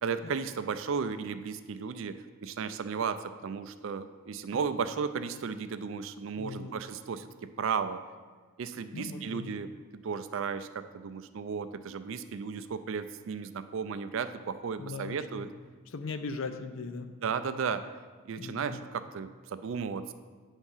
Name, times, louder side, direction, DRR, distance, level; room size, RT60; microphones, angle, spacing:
voice 1, 0.0-7.3 7.6-8.0 8.6-9.7 10.0-15.5 17.2-17.9 18.3-20.1, right 6 dB, 60° right, 11 dB, 0.4 m, -34 dB
voice 2, 6.4-6.8 8.9-9.6 14.8-15.5 15.9-17.1 18.4-18.9, left 4 dB, 65° left, 8 dB, 0.5 m, -39 dB
8.8 x 3.6 x 5.5 m, 1.5 s
head